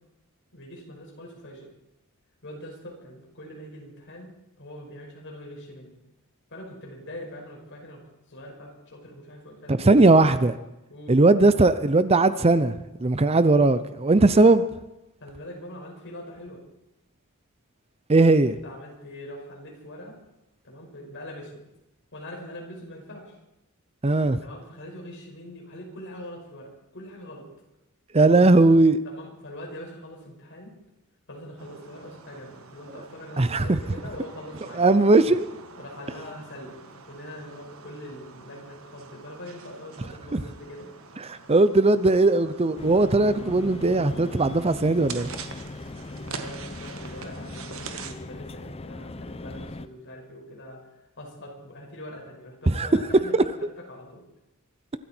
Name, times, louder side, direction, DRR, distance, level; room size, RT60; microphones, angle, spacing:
voice 1, 0.5-1.7 2.4-6.0 6.5-8.0 8.3-10.4 10.9-11.2 15.2-16.6 18.6-20.2 20.6-21.6 22.1-23.4 24.4-27.5 29.0-30.7 31.3-34.8 35.8-40.9 46.1-50.8 51.2-53.3 53.9-54.2, left 1 dB, 55° left, 5.5 m, -42 dB
voice 2, 9.7-10.5 11.1-14.6 18.1-18.6 24.0-24.4 28.1-29.0 33.4-33.8 34.7-35.5 40.3-40.4 41.3-45.3 52.7-52.9, right 2 dB, 25° right, 0.6 m, -19 dB
sound 1, 31.6-48.1, right 5 dB, 65° right, 1.6 m, -45 dB
sound 2, 42.8-49.9, left 2 dB, 25° left, 0.6 m, -39 dB
25.0 x 13.0 x 4.5 m
head